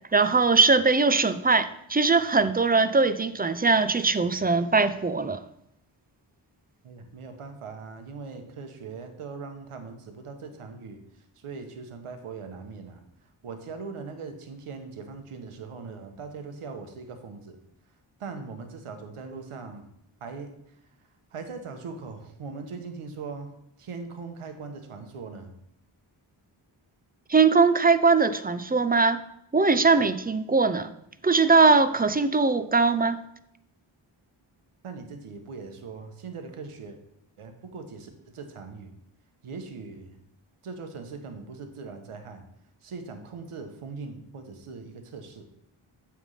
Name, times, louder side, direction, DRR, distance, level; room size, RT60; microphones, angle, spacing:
voice 1, 0.1-5.4 27.3-29.2 29.5-30.9 31.2-33.2, right 4 dB, 20° right, 12 dB, 0.5 m, -21 dB
voice 2, 6.8-13.0 13.4-17.6 18.2-19.9 20.2-20.8 21.3-23.5 23.8-25.6 34.8-37.0 37.4-38.9 39.4-40.2 40.6-42.4 42.8-45.4, right 4 dB, 85° right, 6 dB, 1.1 m, -40 dB
7.9 x 3.6 x 5.5 m, 0.77 s
cardioid pair, 45°, 49 cm